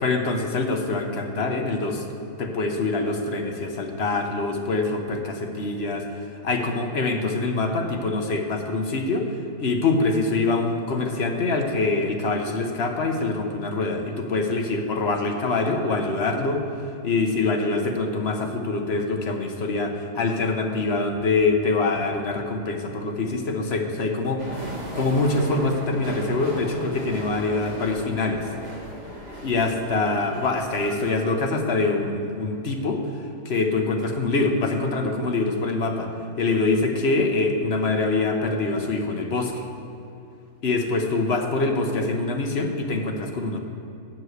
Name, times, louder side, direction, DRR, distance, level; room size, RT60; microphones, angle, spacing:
voice 1, 0.0-2.0 2.4-6.1 6.4-9.3 9.6-16.6 17.0-24.4 24.9-28.5 29.4-33.0 33.4-36.1 36.4-39.6 40.6-43.6, left 3 dB, 45° left, 3 dB, 1.0 m, -24 dB
sound 1, 24.4-31.1, equal, 25° right, 1.8 m, -37 dB
7.7 x 6.3 x 8.0 m, 2.7 s
omnidirectional pair, 1.7 m